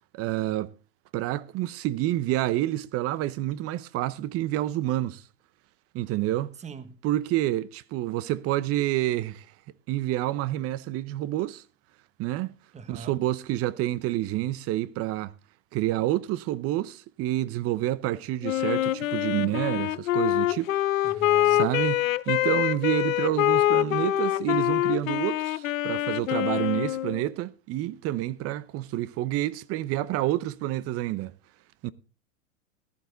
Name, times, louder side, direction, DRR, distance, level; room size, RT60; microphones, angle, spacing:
voice 1, 0.1-0.7 1.1-5.2 5.9-6.5 7.0-9.5 9.9-11.6 12.2-12.5 12.9-15.3 15.7-20.7 21.4-31.3 31.8-31.9, right 15 dB, 35° right, 0.8 m, -28 dB
voice 2, 6.6-7.0 12.7-13.1 21.0-21.7, right 5 dB, 15° right, 1.2 m, -42 dB
Wind instrument woodwind instrument, 18.4-27.3, left 14 dB, 85° left, 0.6 m, -25 dB
15.0 x 11.5 x 4.0 m
hypercardioid pair, 110°, 40 cm